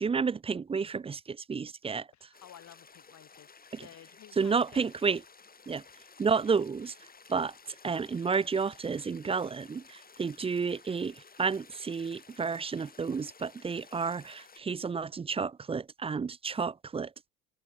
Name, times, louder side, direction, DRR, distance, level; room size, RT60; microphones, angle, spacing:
voice 1, 0.0-2.1 3.7-3.9 4.4-5.2 5.7-5.8 6.2-7.0 7.3-17.3, right 5 dB, 15° right, 0.6 m, -31 dB
voice 2, 2.1-4.9, left 11 dB, 40° left, 3.5 m, -54 dB
sound 1, 2.3-14.6, left 5 dB, 20° left, 3.8 m, -55 dB
figure-of-eight pair, 65°, 45 cm